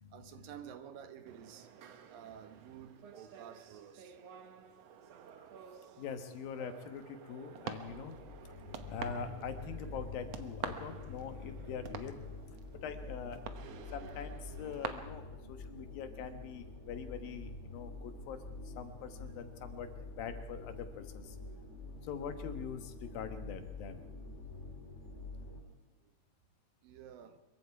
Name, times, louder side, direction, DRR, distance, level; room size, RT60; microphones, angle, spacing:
voice 1, 0.1-1.7 2.1-4.2 15.8-15.9 21.7-22.0 25.6-25.7 26.0-26.1 26.8-27.4, right 9 dB, 80° right, 9 dB, 3.0 m, -51 dB
sound 1, 1.3-14.9, right 8 dB, 60° right, 1.8 m, -48 dB
voice 2, 6.0-8.2 8.6-12.2 12.8-13.4 13.9-15.2 15.5-18.4 18.8-19.9 20.2-21.3 22.1-24.0, left 7 dB, 85° left, 8 dB, 3.2 m, -43 dB
sound 2, 7.6-25.6, left 3 dB, 25° left, 1.9 m, -47 dB
24.5 x 22.5 x 4.8 m, 1.0 s
omnidirectional pair, 4.0 m